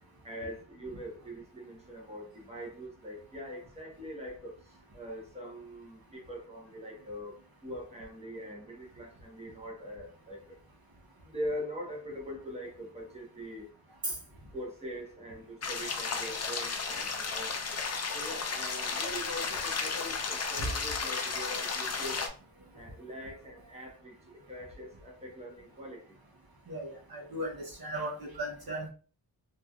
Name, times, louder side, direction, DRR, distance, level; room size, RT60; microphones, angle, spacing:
voice 1, 0.2-10.6 11.2-13.7 14.5-17.5 18.1-22.3 22.7-26.1, equal, 15° right, -2 dB, 1.0 m, -42 dB
sound 1, 15.6-22.3, left 5 dB, 40° left, 0.4 m, -34 dB
voice 2, 26.7-28.9, right 1 dB, 60° right, -2 dB, 0.8 m, -36 dB
3.1 x 2.6 x 2.3 m, 0.39 s
wide cardioid pair, 110°, 42 cm